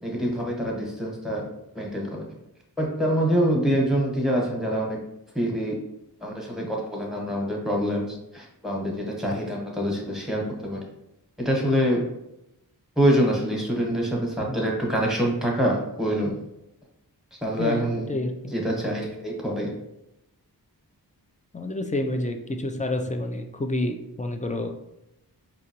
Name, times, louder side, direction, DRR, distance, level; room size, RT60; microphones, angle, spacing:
voice 1, 0.0-1.5 1.7-2.3 2.8-5.0 5.3-5.8 6.2-10.8 11.4-12.0 13.0-16.3 17.4-18.1 18.5-19.7, equal, ahead, -2 dB, 1.1 m, -25 dB
voice 2, 18.1-18.5 21.5-24.7, left 1 dB, 20° left, 4 dB, 0.4 m, -29 dB
4.9 x 2.8 x 2.9 m, 0.88 s
wide cardioid pair, 95°, 40 cm